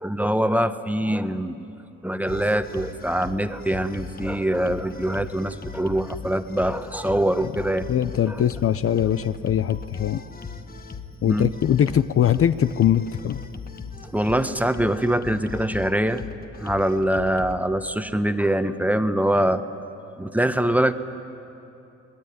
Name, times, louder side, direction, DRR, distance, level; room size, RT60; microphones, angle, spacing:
voice 1, 0.0-1.6 2.0-7.9 8.3-8.4 11.2-11.5 14.0-16.3 16.6-19.6 20.2-20.9, right 1 dB, 5° right, 9 dB, 1.1 m, -23 dB
sound 1, 2.3-17.6, left 5 dB, 30° left, 1.4 m, -39 dB
voice 2, 7.9-10.2 11.2-13.4, left 10 dB, 50° left, 13 dB, 0.6 m, -21 dB
26.0 x 19.0 x 9.4 m, 2.8 s
cardioid pair, 90°, 30 cm